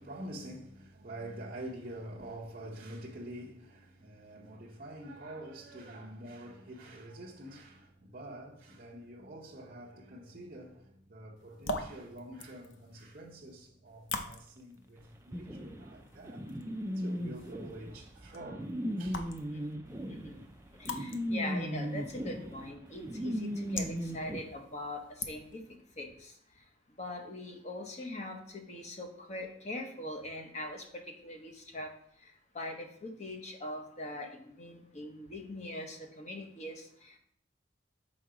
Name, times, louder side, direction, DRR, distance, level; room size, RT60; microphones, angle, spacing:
voice 1, 0.0-16.4 16.9-18.7 19.0-19.3, right 1 dB, 45° right, 0.8 m, -46 dB
sound 1, 11.4-25.8, left 3 dB, 70° left, 0.6 m, -45 dB
sound 2, 15.3-24.4, equal, 15° right, 0.3 m, -37 dB
voice 2, 20.1-20.4 20.8-25.6 26.0-26.3 27.0-30.8 31.2-31.9 32.5-37.2, left 1 dB, 35° left, 0.8 m, -42 dB
5.3 x 3.7 x 4.8 m
head